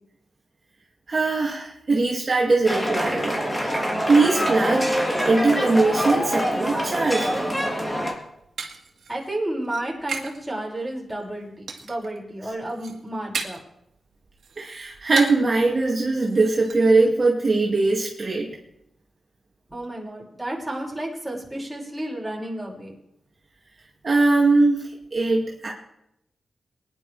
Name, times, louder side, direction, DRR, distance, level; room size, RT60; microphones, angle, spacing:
voice 1, 1.1-3.4 4.1-7.4 14.6-18.6 24.0-25.7, right 3 dB, 45° right, -3 dB, 2.3 m, -21 dB
sound 1, 2.7-8.1, equal, 15° left, 3.5 m, -25 dB
sound 2, 7.9-10.4 10.7-11.2 11.7-12.2 12.5-13.8 14.1-15.5 15.8-15.9 16.2-16.7, right 5 dB, 85° right, 1.9 m, -35 dB
voice 2, 9.1-13.6 19.7-22.9, right 1 dB, 5° right, -5 dB, 5.8 m, -31 dB
23.0 x 11.0 x 3.4 m, 0.81 s
cardioid pair, 80°, 0 cm